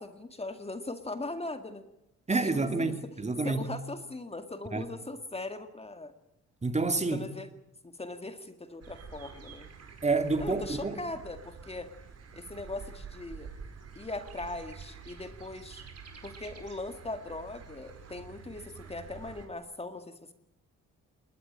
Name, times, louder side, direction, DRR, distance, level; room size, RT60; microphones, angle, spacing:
voice 1, 0.0-1.8 2.3-2.9 3.4-6.1 7.1-7.5 7.8-9.7 10.4-11.9 12.3-13.5 14.0-15.8 16.2-20.3, left 2 dB, 20° left, 2.0 m, -40 dB
voice 2, 2.3-3.7 4.7-4.9 6.6-7.3 10.0-11.0, right 3 dB, 20° right, 2.5 m, -28 dB
sound 1, 8.8-19.5, right 6 dB, 55° right, 5.0 m, -48 dB
21.0 x 20.0 x 8.8 m
cardioid pair, 90°, 30 cm